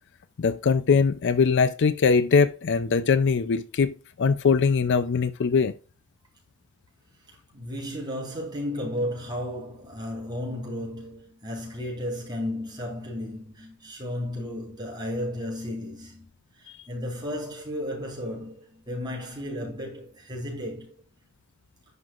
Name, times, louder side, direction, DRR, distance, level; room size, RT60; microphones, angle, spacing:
voice 1, 0.4-5.7, left 5 dB, 55° left, 0.4 m, -22 dB
voice 2, 7.5-16.3 16.6-20.9, left 1 dB, 20° right, 4.0 m, -34 dB
11.0 x 6.1 x 2.4 m
head